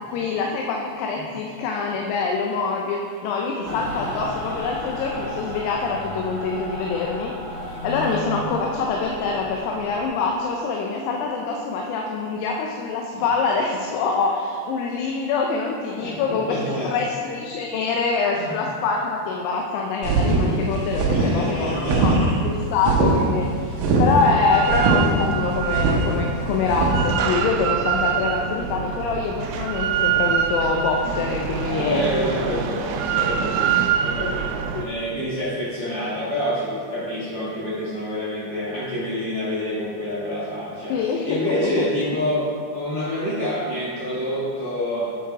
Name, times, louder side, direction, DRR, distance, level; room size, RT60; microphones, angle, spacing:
voice 1, 0.0-7.3 7.8-23.7 24.0-32.0 34.2-34.4 34.7-34.8 40.9-41.8, left 4 dB, 90° left, 0 dB, 2.7 m, -25 dB
Mechanical fan, 3.6-10.1, left 1 dB, 50° right, 2.4 m, -33 dB
voice 2, 16.0-16.9 18.3-18.5 21.1-22.2 31.6-45.1, equal, 50° left, -9 dB, 2.6 m, -27 dB
sound 1, 20.0-27.1, right 3 dB, 70° right, 2.4 m, -21 dB
Drill, 24.5-34.8, right 8 dB, 90° right, 2.6 m, -25 dB
9.0 x 4.7 x 4.7 m, 2.2 s
omnidirectional pair, 4.6 m